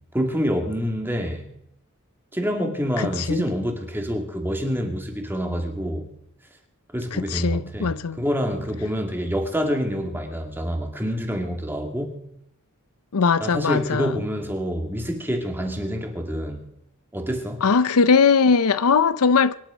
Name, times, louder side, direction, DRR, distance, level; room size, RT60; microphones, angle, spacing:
voice 1, 0.1-1.5 2.3-6.1 6.9-12.2 13.4-16.7 17.1-17.6, equal, 10° right, 2.5 m, -27 dB
voice 2, 3.0-3.5 7.1-8.2 13.1-14.2 17.6-19.5, left 5 dB, 85° left, 0.6 m, -20 dB
24.0 x 11.0 x 5.2 m
head